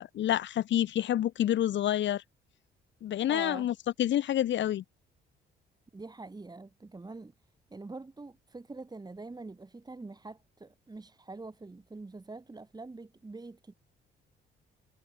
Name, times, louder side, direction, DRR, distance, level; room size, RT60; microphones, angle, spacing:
voice 1, 0.0-2.2 3.0-4.8, left 11 dB, 65° left, 1.2 m, -28 dB
voice 2, 3.3-3.7 5.9-7.3 7.7-13.7, right 3 dB, 20° right, 2.7 m, -44 dB
cardioid pair, 90°, 20 cm